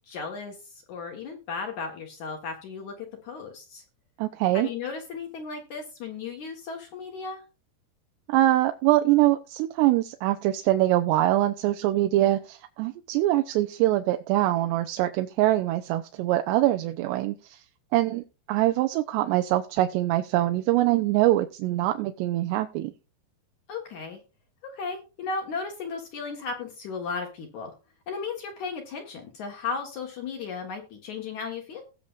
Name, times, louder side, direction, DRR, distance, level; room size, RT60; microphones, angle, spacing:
voice 1, 0.1-3.8 4.5-7.4 23.7-24.2 24.6-27.7 28.1-31.8, left 5 dB, 55° left, 2 dB, 2.3 m, -35 dB
voice 2, 4.2-4.7 8.3-17.6 17.9-18.2 18.5-22.9, right 15 dB, 85° right, 7 dB, 2.8 m, -23 dB
19.0 x 6.6 x 2.5 m, 0.32 s
omnidirectional pair, 4.9 m